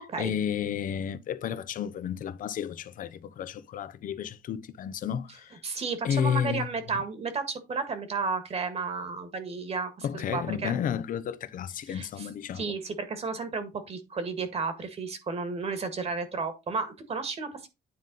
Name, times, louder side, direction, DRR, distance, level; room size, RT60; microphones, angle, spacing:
voice 1, 0.0-5.6 6.0-6.7 10.0-12.7, left 8 dB, 55° left, 0.7 m, -32 dB
voice 2, 5.6-10.7 11.9-12.3 12.5-17.7, right 4 dB, 40° right, 1.7 m, -33 dB
9.6 x 3.8 x 4.0 m
cardioid pair, 110°, 17 cm